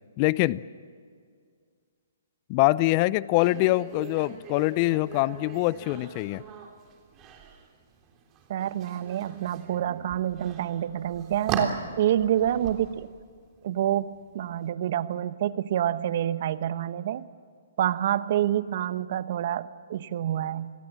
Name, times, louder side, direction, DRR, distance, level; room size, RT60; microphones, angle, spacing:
voice 1, 0.2-0.6 2.5-6.4, left 19 dB, 35° left, 20 dB, 0.6 m, -24 dB
sound 1, 3.3-14.6, right 5 dB, 25° right, 3.4 m, -40 dB
voice 2, 8.5-13.1 13.6-17.3 17.8-20.7, right 11 dB, 55° right, 14 dB, 1.0 m, -27 dB
28.5 x 20.5 x 7.5 m, 2.1 s
hypercardioid pair, 135°, 0 cm